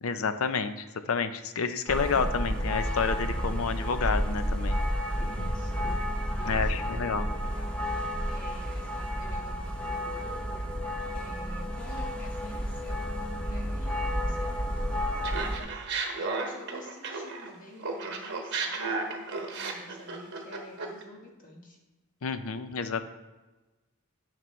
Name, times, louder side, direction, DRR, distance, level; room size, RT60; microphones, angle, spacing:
voice 1, 0.0-4.8 6.5-7.3 22.2-23.0, left 5 dB, 70° left, 10 dB, 0.6 m, -29 dB
sound 1, 1.9-15.6, equal, 5° left, 0.7 m, -31 dB
voice 2, 5.2-6.1 6.4-7.8 8.3-10.7 11.1-13.1 13.4-15.7 16.1-21.8, left 1 dB, 35° left, 0 dB, 1.3 m, -49 dB
Laughter, 15.2-17.5 17.8-21.0, right 4 dB, 50° right, 1.1 m, -33 dB
11.0 x 6.0 x 3.2 m, 1.1 s
head